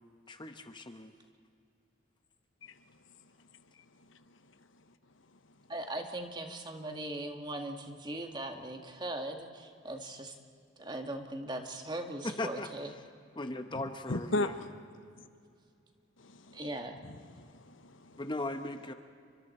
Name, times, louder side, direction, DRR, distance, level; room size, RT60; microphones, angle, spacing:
voice 1, 0.3-1.1 12.2-12.7 13.4-14.6 18.2-18.9, left 2 dB, 25° left, 7 dB, 0.9 m, -38 dB
voice 2, 5.7-10.3 10.8-12.9 16.5-17.0, right 1 dB, 20° right, 4 dB, 1.7 m, -39 dB
voice 3, 14.1-14.7 16.2-16.6 17.1-18.2, left 2 dB, 80° left, 10 dB, 1.1 m, -35 dB
29.5 x 24.5 x 4.4 m, 2.3 s
head